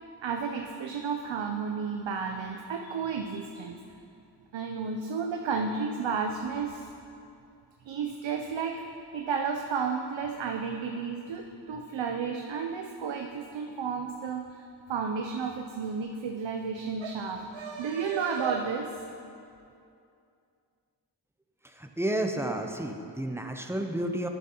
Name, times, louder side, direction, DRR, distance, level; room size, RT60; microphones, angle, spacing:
voice 1, 0.2-3.8 4.5-6.9 7.8-8.8 9.1-19.0, right 5 dB, 85° right, 3 dB, 0.5 m, -32 dB
voice 2, 22.0-24.3, right 1 dB, 5° right, 4 dB, 0.5 m, -31 dB
11.5 x 6.2 x 2.9 m, 2.5 s
wide cardioid pair, 65°, 44 cm